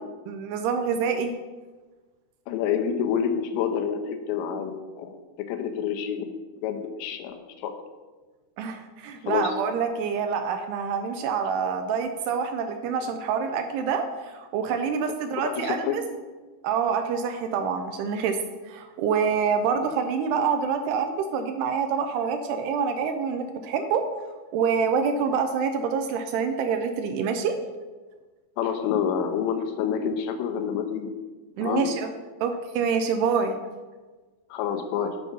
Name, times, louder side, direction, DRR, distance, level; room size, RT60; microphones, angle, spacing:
voice 1, 0.3-1.3 8.6-16.0 16.6-18.4 18.6-24.0 24.5-27.5 31.6-32.1 32.4-33.6, right 6 dB, 80° right, 7 dB, 2.5 m, -26 dB
voice 2, 2.5-5.1 5.5-6.3 6.6-7.7 9.3-9.5 15.4-16.0 28.6-31.1 31.6-31.9 34.5-35.2, left 8 dB, 85° left, 6 dB, 3.0 m, -28 dB
8.3 x 6.1 x 5.3 m, 1.3 s
omnidirectional pair, 5.1 m